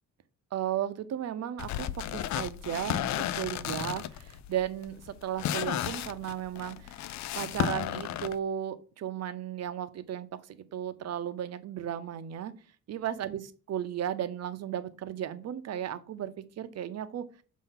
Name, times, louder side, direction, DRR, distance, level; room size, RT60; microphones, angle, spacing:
voice 1, 0.5-7.0 7.3-12.5 12.9-17.2, right 10 dB, 60° right, 11 dB, 0.7 m, -35 dB
sound 1, 1.6-8.4, left 11 dB, 65° left, 0.5 m, -33 dB
6.6 x 2.8 x 5.7 m, 0.37 s
cardioid pair, 90°, 30 cm